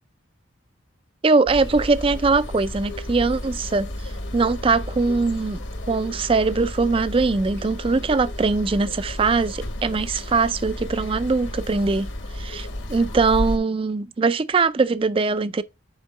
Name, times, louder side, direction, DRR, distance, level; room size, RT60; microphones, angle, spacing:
voice 1, 1.2-3.9 4.3-12.1 12.3-15.6, right 4 dB, 25° right, 0.3 m, -21 dB
sound 1, 1.5-13.6, left 1 dB, 60° left, 1.3 m, -32 dB
8.1 x 4.4 x 3.8 m
head